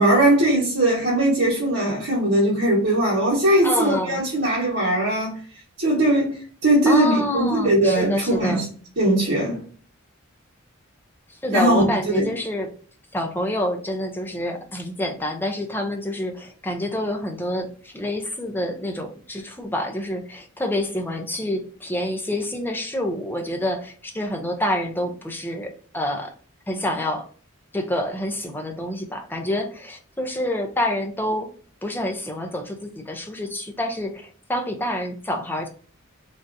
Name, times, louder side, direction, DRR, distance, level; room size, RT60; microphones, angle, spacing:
voice 1, 0.0-5.4 5.8-8.6 9.0-9.6 11.5-12.3, right 1 dB, 60° right, 1.2 m, -20 dB
voice 2, 3.6-4.2 6.9-8.7 11.4-12.7 13.1-26.3 26.7-27.3 27.7-31.5 31.8-35.7, left 1 dB, 10° left, 0.5 m, -27 dB
3.5 x 2.7 x 2.5 m
head